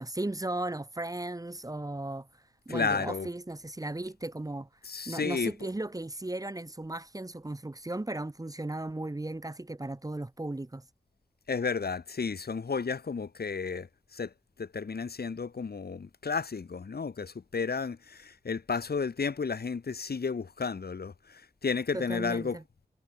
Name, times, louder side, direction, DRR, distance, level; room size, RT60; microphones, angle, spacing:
voice 1, 0.0-2.3 2.7-4.7 5.1-10.8 21.9-22.6, right 2 dB, 20° right, 1.1 m, -36 dB
voice 2, 2.7-3.3 4.8-5.5 11.5-14.3 14.6-22.6, left 5 dB, 70° left, 2.4 m, -32 dB
cardioid pair, 45°, 17 cm